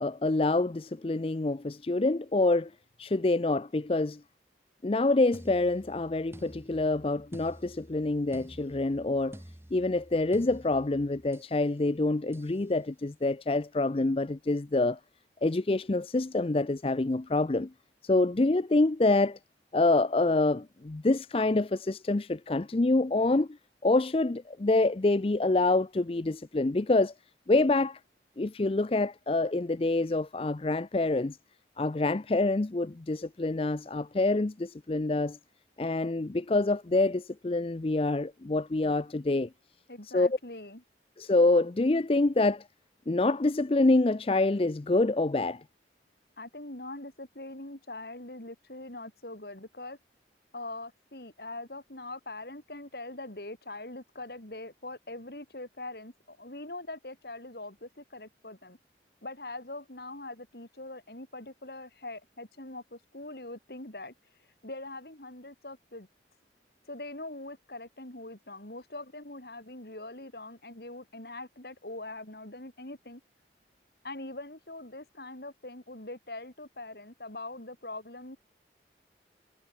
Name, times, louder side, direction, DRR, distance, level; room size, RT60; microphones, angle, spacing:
voice 1, 0.0-2.7 3.0-4.2 4.8-9.4 9.7-15.0 15.4-17.7 18.0-19.4 19.7-23.5 23.8-27.1 27.5-28.0 28.4-31.4 31.8-35.4 35.8-39.5 40.1-40.3 41.2-42.6 43.1-45.6, left 2 dB, 30° left, 0.5 m, -26 dB
sound 1, 5.3-11.6 12.3-12.6, equal, 15° right, 1.2 m, -50 dB
voice 2, 39.9-40.8 46.4-50.0 50.5-58.8 59.2-64.1 64.6-66.1 66.9-73.2 74.0-78.4, left 2 dB, 60° left, 3.5 m, -42 dB
head